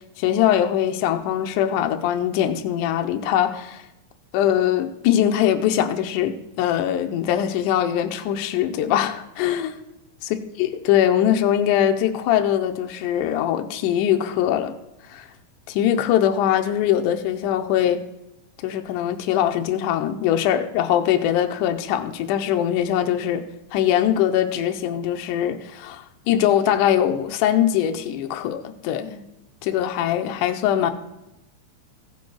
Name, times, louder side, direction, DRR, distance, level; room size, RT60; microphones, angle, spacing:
voice 1, 0.2-3.8 4.3-9.7 10.3-14.7 15.1-15.3 15.7-18.0 18.6-23.4 23.7-29.2 29.6-30.9, left 10 dB, 80° left, 2.0 m, -22 dB
15.0 x 7.1 x 4.6 m
omnidirectional pair, 4.1 m